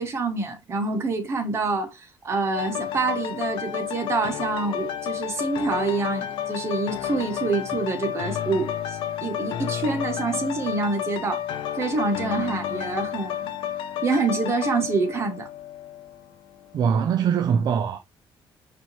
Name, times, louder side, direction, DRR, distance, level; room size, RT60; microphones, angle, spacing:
voice 1, 0.0-11.4 11.7-13.5 14.0-15.5, right 3 dB, 30° right, 0.9 m, -26 dB
sound 1, 2.5-16.3 16.7-16.8, left 10 dB, 85° left, 0.6 m, -31 dB
voice 2, 16.7-18.0, right 7 dB, 50° right, 0.3 m, -22 dB
4.3 x 2.7 x 2.9 m
cardioid pair, 165°, 9 cm